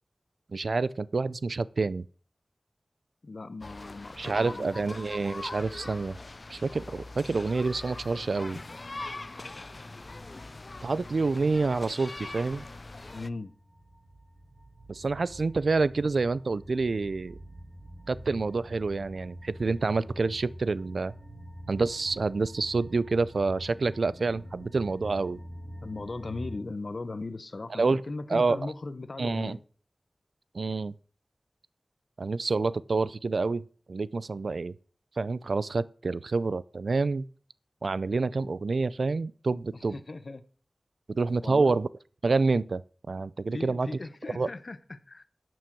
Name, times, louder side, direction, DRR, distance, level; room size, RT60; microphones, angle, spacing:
voice 1, 0.5-2.0 4.2-6.1 6.5-8.6 10.8-12.7 14.9-17.4 18.1-21.1 21.7-25.4 27.8-28.0 28.3-28.7 29.2-29.6 30.5-30.9 32.2-33.6 33.9-34.7 35.2-37.3 37.8-40.0 41.1-41.9 42.2-42.8 43.1-43.9 44.4-44.5, right 3 dB, 80° right, 0.4 m, -28 dB
voice 2, 3.2-5.0 13.1-13.5 25.8-29.6 39.7-40.4 41.4-41.8 43.5-45.3, left 3 dB, 60° left, 0.9 m, -38 dB
sound 1, 3.6-13.3, left 2 dB, 45° left, 0.5 m, -42 dB
sound 2, 12.3-26.6, equal, 30° right, 3.5 m, -46 dB
11.5 x 6.3 x 6.0 m
wide cardioid pair, 80°, 0 cm